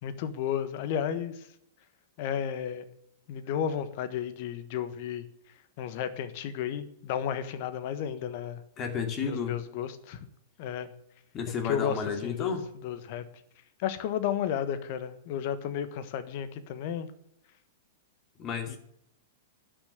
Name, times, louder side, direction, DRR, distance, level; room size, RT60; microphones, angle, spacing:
voice 1, 0.0-1.5 2.2-2.9 3.3-5.3 5.8-8.6 9.2-10.3 10.6-10.9 11.6-12.6 12.8-13.2 13.8-17.1 18.7-18.8, left 9 dB, 50° left, 13 dB, 1.4 m, -33 dB
voice 2, 8.8-9.6 11.3-12.6 18.4-18.8, left 6 dB, 30° left, 6 dB, 2.5 m, -32 dB
11.5 x 6.6 x 9.5 m, 0.70 s
hypercardioid pair, 105°, 0 cm